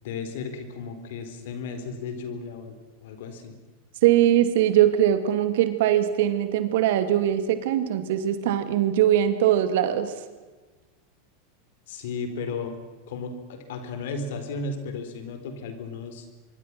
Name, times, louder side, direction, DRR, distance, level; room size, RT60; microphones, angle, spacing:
voice 1, 0.0-2.7 3.0-3.6 11.9-12.8 13.1-16.3, left 4 dB, 65° left, 8 dB, 4.0 m, -34 dB
voice 2, 4.0-10.1, right 11 dB, 65° right, 10 dB, 2.3 m, -21 dB
25.0 x 24.0 x 6.1 m, 1.3 s
hypercardioid pair, 95°, 0 cm